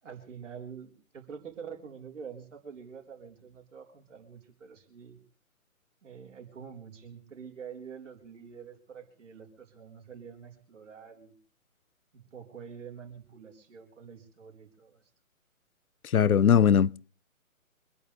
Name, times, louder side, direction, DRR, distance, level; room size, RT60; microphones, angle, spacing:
voice 1, 0.0-5.2 6.0-11.3 12.1-15.1, right 7 dB, 60° right, 4.4 m, -46 dB
voice 2, 16.1-17.0, left 8 dB, 85° left, 0.7 m, -20 dB
26.0 x 11.0 x 3.3 m
figure-of-eight pair, 150°, 42 cm